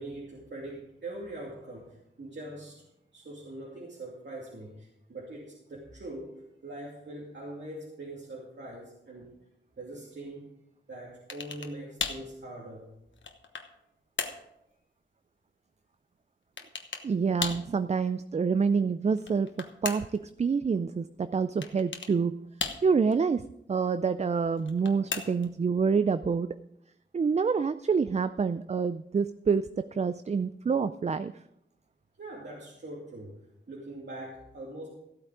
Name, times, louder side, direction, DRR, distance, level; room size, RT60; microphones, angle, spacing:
voice 1, 0.0-2.8 3.1-9.3 9.8-10.5 10.9-12.9 32.2-33.4 33.7-34.9, right 1 dB, 65° right, -4 dB, 2.6 m, -42 dB
sound 1, 11.3-11.7 12.0-12.3 12.9-13.7 14.2-14.5 16.6-17.1 17.4-17.7 19.1-20.2 21.6-22.1 22.6-23.1 24.6-25.5, left 5 dB, 85° left, 1.1 m, -36 dB
voice 2, 17.0-22.4 22.8-23.4 23.7-26.6 27.1-31.4, right 5 dB, 35° right, 13 dB, 0.4 m, -27 dB
15.0 x 8.7 x 4.9 m, 0.82 s
wide cardioid pair, 90°, 19 cm